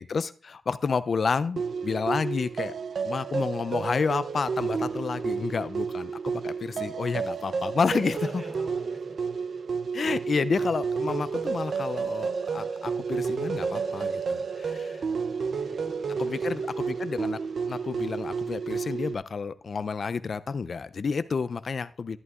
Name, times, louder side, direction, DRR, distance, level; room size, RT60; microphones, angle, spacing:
voice 1, 0.0-2.7 3.0-8.4 9.9-15.0 16.2-17.4 17.7-22.2, left 5 dB, 55° left, 0.4 m, -30 dB
sound 1, 1.6-19.1, right 5 dB, 70° right, 0.5 m, -31 dB
voice 2, 8.1-9.3 9.7-9.8 15.2-16.5, right 1 dB, 25° right, 3.3 m, -47 dB
11.0 x 11.0 x 2.4 m
wide cardioid pair, 90°, 0 cm